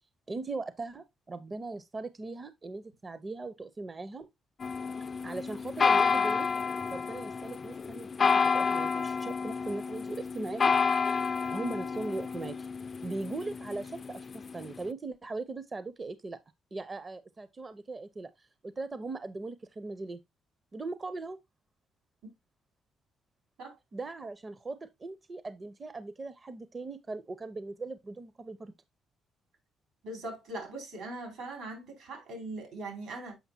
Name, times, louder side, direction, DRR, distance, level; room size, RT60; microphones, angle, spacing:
voice 1, 0.3-4.3 5.2-6.5 6.9-10.7 11.5-12.7 13.0-16.4 16.7-20.2 20.7-21.4 23.9-28.7, right 3 dB, 30° right, 0.5 m, -39 dB
sound 1, 4.6-14.8, left 5 dB, 40° left, 0.3 m, -30 dB
voice 2, 30.0-33.4, right 2 dB, 80° right, 3.8 m, -40 dB
7.1 x 5.4 x 2.7 m
cardioid pair, 90°, 0 cm